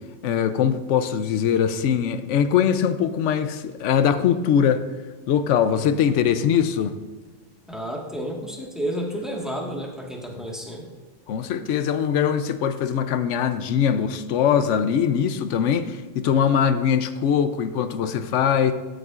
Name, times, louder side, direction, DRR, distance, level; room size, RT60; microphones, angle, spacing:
voice 1, 0.2-4.8 5.3-7.0 10.4-10.5 11.3-18.7, left 8 dB, 70° left, 0.9 m, -22 dB
voice 2, 7.7-10.9, equal, ahead, 1.4 m, -31 dB
14.0 x 7.6 x 2.5 m
omnidirectional pair, 1.4 m